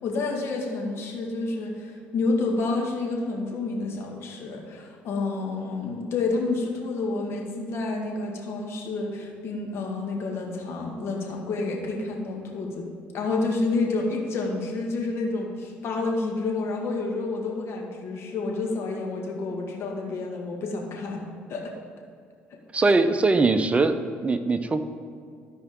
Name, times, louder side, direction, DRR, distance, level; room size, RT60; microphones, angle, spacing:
voice 1, 0.0-21.8, left 3 dB, 60° left, 0 dB, 1.9 m, -29 dB
voice 2, 22.7-24.9, right 3 dB, 25° right, 9 dB, 0.7 m, -22 dB
13.5 x 4.9 x 3.7 m, 2.3 s
supercardioid pair, 75°, 5 cm